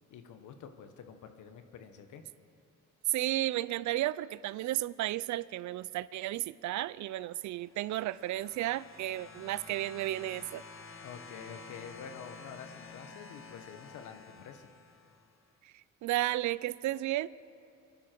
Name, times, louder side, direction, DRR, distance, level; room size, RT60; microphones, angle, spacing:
voice 1, 0.1-2.2 11.0-14.7, left 7 dB, 80° left, 7 dB, 1.3 m, -48 dB
voice 2, 3.1-10.6 15.6-17.3, right 15 dB, 70° right, 19 dB, 0.4 m, -33 dB
sound 1, 7.6-15.4 16.4-16.5, left 4 dB, 45° left, 1.3 m, -51 dB
24.0 x 11.0 x 4.5 m, 2.8 s
cardioid pair, 90°, 30 cm